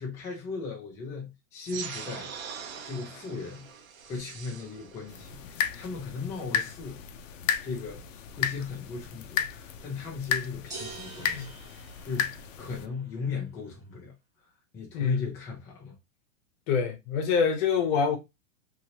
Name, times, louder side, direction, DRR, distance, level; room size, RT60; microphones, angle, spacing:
voice 1, 0.0-2.3 2.8-3.7 4.0-7.0 7.6-14.1 14.7-16.0, left 4 dB, 5° left, 0.4 m, -37 dB
sound 1, 1.6-6.6, right 7 dB, 90° right, 0.9 m, -43 dB
sound 2, 5.1-12.9, left 8 dB, 65° left, 0.6 m, -34 dB
sound 3, 10.7-12.7, right 3 dB, 10° right, 0.9 m, -44 dB
voice 2, 16.7-18.2, left 6 dB, 35° left, 0.9 m, -26 dB
2.8 x 2.7 x 2.7 m
supercardioid pair, 150°, 40 cm